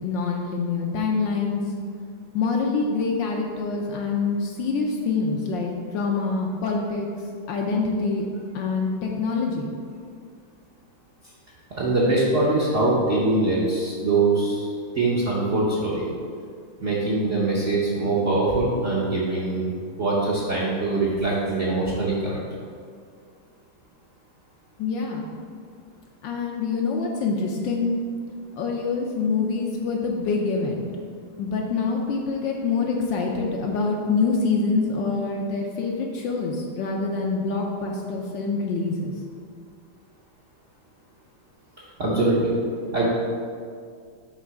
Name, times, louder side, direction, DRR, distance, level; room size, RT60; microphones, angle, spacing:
voice 1, 0.0-1.6 2.3-7.1 7.5-8.3 8.5-9.7 24.8-25.2 26.2-27.9 28.5-30.9 31.4-39.1, left 4 dB, 70° left, 0 dB, 1.2 m, -25 dB
voice 2, 11.8-14.7 14.9-16.0 16.8-19.7 20.0-22.4 42.0-42.5 42.9-43.1, right 2 dB, 50° right, -7 dB, 0.9 m, -23 dB
7.4 x 3.2 x 5.9 m, 2.2 s
omnidirectional pair, 2.4 m